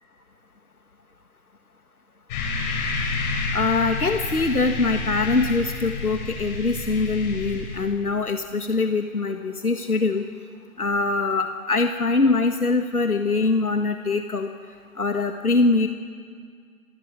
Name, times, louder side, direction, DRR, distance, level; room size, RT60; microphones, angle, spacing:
sound 1, 2.3-7.8, left 3 dB, 30° left, 5.4 m, -29 dB
voice 1, 3.5-10.2 10.8-14.5 15.0-15.9, left 3 dB, 90° left, 6 dB, 1.7 m, -23 dB
27.5 x 16.0 x 9.6 m, 2.1 s
figure-of-eight pair, 140°, 43 cm